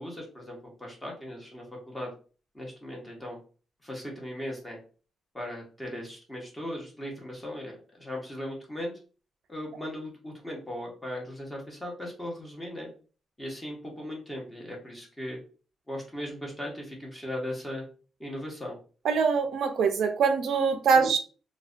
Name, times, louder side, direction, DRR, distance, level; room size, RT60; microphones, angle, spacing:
voice 1, 0.0-2.1 2.5-3.4 3.8-4.8 5.3-8.9 9.5-12.9 13.4-15.4 15.9-17.8 18.2-18.8 20.9-21.1, left 1 dB, 10° left, -1 dB, 0.7 m, -38 dB
voice 2, 19.0-21.2, right 5 dB, 65° right, 6 dB, 0.3 m, -23 dB
2.4 x 2.1 x 2.4 m, 0.37 s
wide cardioid pair, 155°, 0 cm